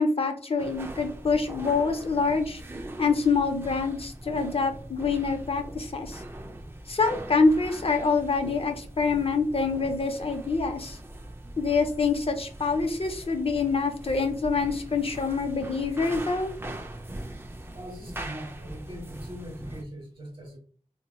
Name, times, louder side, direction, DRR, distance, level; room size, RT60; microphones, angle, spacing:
voice 1, 0.0-2.6 3.0-6.2 6.9-11.0 11.6-16.5, left 4 dB, 50° left, 6 dB, 0.5 m, -26 dB
sound 1, 0.6-19.8, right 1 dB, 20° right, 0.4 m, -41 dB
voice 2, 17.7-20.6, equal, 40° right, 2 dB, 1.0 m, -41 dB
4.0 x 2.1 x 2.3 m, 0.43 s
wide cardioid pair, 85°, 13 cm